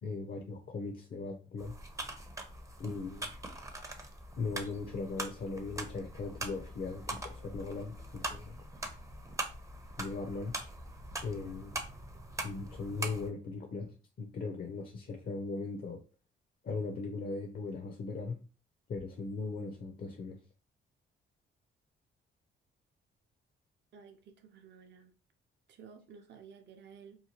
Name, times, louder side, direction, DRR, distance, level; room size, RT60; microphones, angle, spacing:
voice 1, 0.0-1.7 2.8-3.3 4.4-8.6 10.0-10.5 11.2-11.8 12.4-16.0 16.6-18.4 18.9-20.4, left 3 dB, 45° left, 4 dB, 0.6 m, -39 dB
sound 1, 1.6-13.3, right 2 dB, 15° right, 0.5 m, -42 dB
voice 2, 23.9-25.1 25.7-27.2, right 6 dB, 55° right, 5 dB, 0.6 m, -54 dB
2.8 x 2.2 x 2.8 m, 0.34 s
cardioid pair, 75°, 21 cm